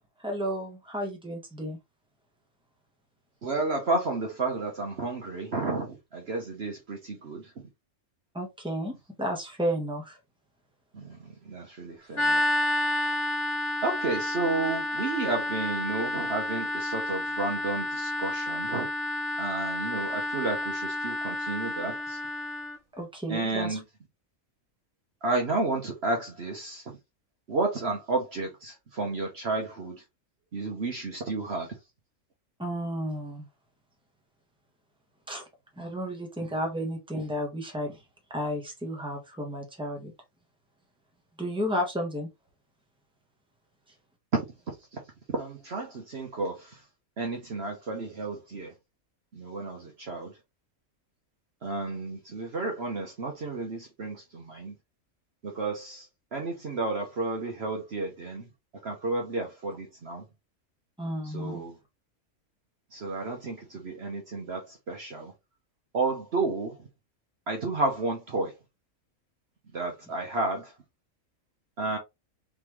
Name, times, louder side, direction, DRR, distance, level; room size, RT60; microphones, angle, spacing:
voice 1, 0.2-1.8 8.3-10.2 23.0-23.8 32.6-33.4 35.3-35.4 35.8-38.0 38.3-40.1 41.4-42.3 61.0-61.6, equal, 5° right, 1.4 m, -32 dB
voice 2, 3.4-7.5 10.9-12.4 13.0-13.1 13.8-18.9 19.4-22.2 23.3-23.8 25.2-26.8 27.5-30.0 30.5-31.7 44.9-45.0 45.3-46.8 47.2-48.7 49.3-50.3 51.6-54.7 55.4-58.5 58.8-60.2 61.2-61.8 62.9-65.3 65.9-66.9 67.5-68.5 69.7-70.7 71.8-72.0, right 3 dB, 50° right, 1.1 m, -32 dB
sound 1, 12.1-22.8, left 1 dB, 20° left, 1.2 m, -30 dB
4.1 x 3.5 x 3.1 m
omnidirectional pair, 1.4 m